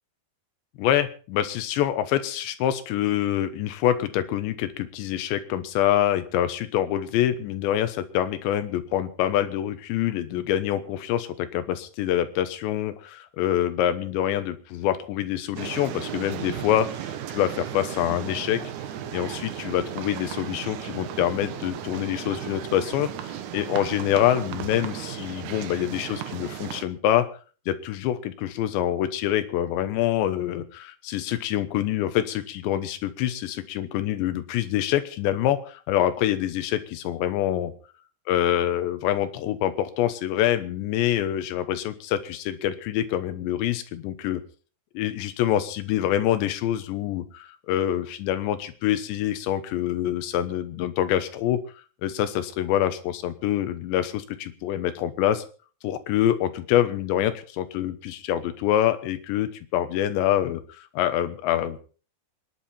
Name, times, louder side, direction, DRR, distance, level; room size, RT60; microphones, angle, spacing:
voice 1, 0.8-18.6 19.1-23.1 23.5-27.3 27.7-37.7 38.3-44.4 44.9-51.6 52.0-55.4 55.8-61.8, left 11 dB, 85° left, 11 dB, 3.4 m, -26 dB
sound 1, 15.6-26.8, right 10 dB, 75° right, 1.8 m, -35 dB
25.0 x 10.5 x 4.3 m, 0.39 s
omnidirectional pair, 5.0 m